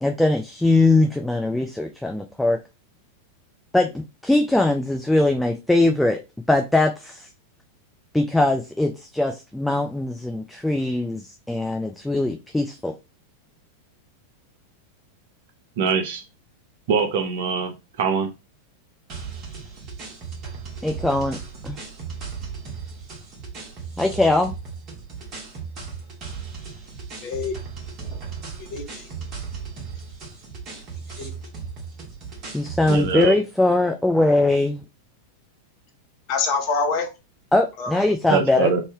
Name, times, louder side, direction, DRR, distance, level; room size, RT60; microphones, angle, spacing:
voice 1, 0.0-2.6 3.7-6.2 6.5-7.3 8.1-12.9 20.8-21.4 21.6-21.8 24.0-24.5 32.5-34.9 37.5-38.7, left 2 dB, 5° left, 0.4 m, -21 dB
voice 2, 15.8-16.2 16.9-17.7 18.0-18.3 32.9-33.4 38.3-38.8, right 5 dB, 55° right, 0.7 m, -22 dB
sound 1, 19.1-33.3, right 5 dB, 35° right, 1.4 m, -36 dB
voice 3, 27.2-27.6 28.6-29.1 30.7-30.8 31.2-31.3 36.3-37.1 37.8-38.0, left 4 dB, 45° left, 0.9 m, -26 dB
3.1 x 2.6 x 3.4 m
figure-of-eight pair, 90°, 0 cm